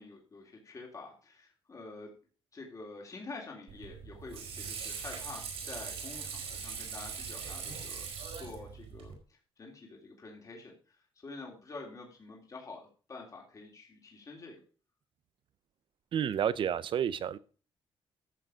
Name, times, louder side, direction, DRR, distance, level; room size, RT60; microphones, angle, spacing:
voice 1, 0.0-2.1 2.5-8.1 8.3-9.1 9.6-11.0 11.2-14.6, left 3 dB, 35° left, 0 dB, 3.4 m, -47 dB
Water / Sink (filling or washing), 3.7-9.1, right 6 dB, 80° right, 4.5 m, -41 dB
voice 2, 16.1-17.4, right 9 dB, 60° right, 17 dB, 0.7 m, -30 dB
14.0 x 6.9 x 5.1 m, 0.39 s
cardioid pair, 120°, 10 cm